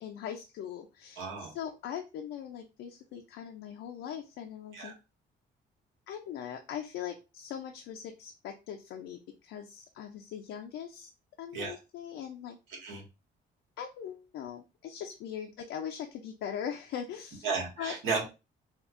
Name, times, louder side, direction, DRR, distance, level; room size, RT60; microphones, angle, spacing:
voice 1, 0.0-4.9 6.1-11.1 11.4-12.6 13.8-17.5 17.8-17.9, left 9 dB, 85° left, 3 dB, 0.5 m, -40 dB
voice 2, 1.2-1.5 4.7-4.9 11.5-11.7 12.7-13.0 17.4-18.3, right 4 dB, 85° right, -1 dB, 1.4 m, -34 dB
4.3 x 2.3 x 2.5 m, 0.28 s
cardioid pair, 90°, 20 cm